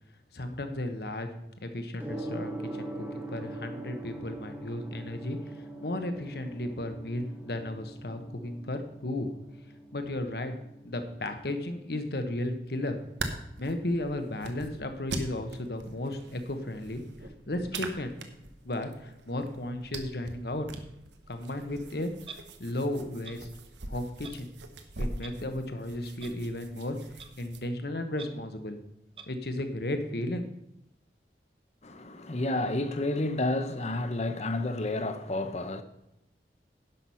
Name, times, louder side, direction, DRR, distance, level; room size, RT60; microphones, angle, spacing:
voice 1, 0.3-1.3 1.6-5.4 5.8-9.3 9.9-10.5 10.8-13.0 13.6-17.0 17.5-18.1 18.6-20.7 21.3-22.1 22.6-23.5 23.9-24.5 25.0-27.0 27.4-28.8 29.3-30.5, left 1 dB, 60° left, 1.1 m, -34 dB
Gong, 2.0-21.0, right 2 dB, 10° right, 1.3 m, -45 dB
sound 1, 12.9-27.6, right 2 dB, 90° right, 1.1 m, -42 dB
Clock, 22.2-22.4 23.2-23.4 24.2-24.3 25.2-25.3 26.2-26.3 27.2-27.3 28.2-28.3 29.2-29.3, right 5 dB, 30° right, 0.7 m, -44 dB
voice 2, 31.8-35.8, left 2 dB, 40° left, 0.8 m, -30 dB
11.0 x 6.0 x 5.6 m
head